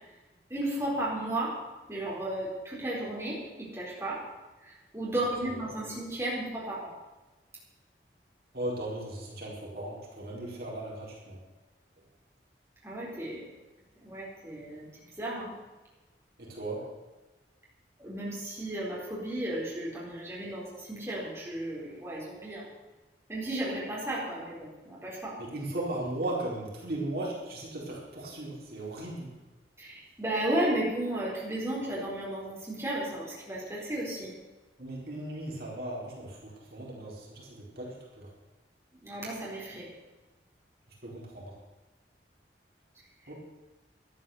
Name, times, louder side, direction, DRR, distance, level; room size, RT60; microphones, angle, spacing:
voice 1, 0.5-1.5 1.9-4.2 4.6-6.9 12.8-13.4 14.0-14.9 15.2-15.5 18.0-22.6 23.3-25.4 29.8-34.4 39.0-39.9, right 1 dB, 15° right, -6 dB, 4.3 m, -34 dB
voice 2, 5.4-5.8 8.5-11.4 16.4-16.8 25.4-29.3 34.8-38.3 41.0-41.6 43.3-43.4, right 1 dB, 55° right, -3 dB, 4.3 m, -37 dB
13.0 x 12.0 x 7.1 m, 1.2 s
head